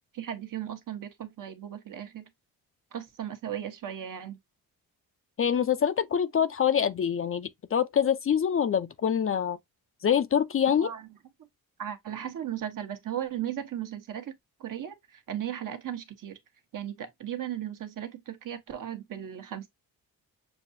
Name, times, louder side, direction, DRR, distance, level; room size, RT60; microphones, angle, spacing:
voice 1, 0.1-2.3 2.9-4.4 10.8-11.0 11.8-14.3 14.6-16.4 16.7-19.7, right 10 dB, 60° right, 1.1 m, -36 dB
voice 2, 5.4-9.6 10.0-10.9, left 8 dB, 40° left, 0.5 m, -25 dB
6.8 x 2.3 x 2.6 m
cardioid pair, 80°, 36 cm